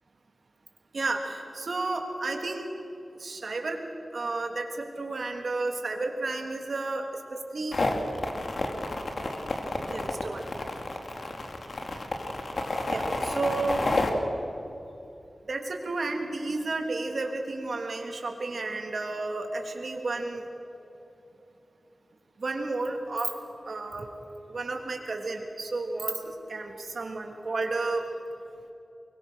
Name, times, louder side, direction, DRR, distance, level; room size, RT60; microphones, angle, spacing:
voice 1, 0.9-2.7 3.2-3.8 4.1-7.8 9.9-10.7 12.6-13.8 15.5-20.4 22.4-23.3 23.7-24.1 24.5-28.1, right 3 dB, 65° right, 3 dB, 3.1 m, -32 dB
sound 1, 7.7-14.1, left 2 dB, 60° left, 2.7 m, -30 dB
23.5 x 23.0 x 6.4 m, 2.9 s
cardioid pair, 60°, 0 cm